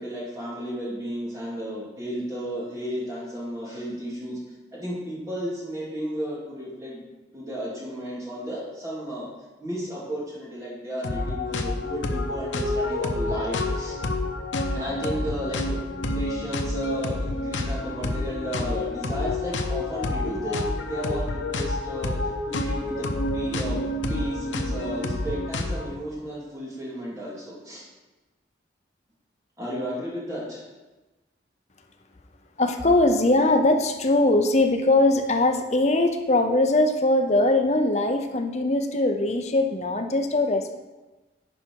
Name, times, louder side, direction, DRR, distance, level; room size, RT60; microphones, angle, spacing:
voice 1, 0.0-4.4 4.7-7.0 7.3-9.3 9.6-14.0 14.7-15.8 16.1-23.8 24.1-27.9 29.6-30.6, equal, 20° right, -6 dB, 2.3 m, -33 dB
sound 1, 11.0-25.9, left 2 dB, 80° left, 0.8 m, -28 dB
voice 2, 32.6-40.8, left 2 dB, 35° left, 4 dB, 0.7 m, -21 dB
10.5 x 5.0 x 4.6 m, 1.2 s
head